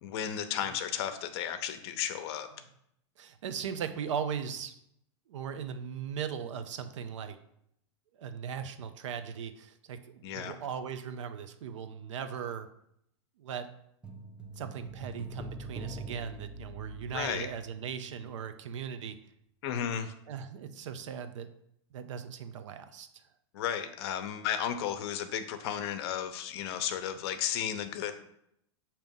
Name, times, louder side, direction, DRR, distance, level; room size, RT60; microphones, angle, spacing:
voice 1, 0.0-2.5 10.2-10.5 17.1-17.5 19.6-20.1 23.5-28.1, left 9 dB, 60° left, 8 dB, 0.7 m, -34 dB
voice 2, 3.2-4.7 5.3-7.4 8.2-12.7 13.4-13.7 14.6-19.2 20.3-21.5 21.9-23.1, right 7 dB, 85° right, 9 dB, 0.7 m, -38 dB
sound 1, 14.0-18.5 18.7-18.9, right 3 dB, 5° right, 0.4 m, -44 dB
6.3 x 2.9 x 5.3 m, 0.75 s
supercardioid pair, 135°, 15 cm